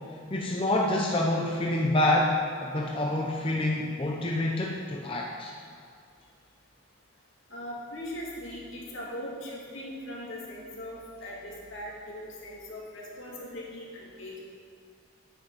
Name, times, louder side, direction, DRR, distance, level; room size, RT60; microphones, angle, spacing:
voice 1, 0.3-5.5, left 1 dB, 25° left, -2 dB, 0.7 m, -27 dB
voice 2, 7.5-14.4, left 1 dB, 65° left, -4 dB, 2.7 m, -40 dB
13.5 x 9.2 x 4.1 m, 2.3 s
head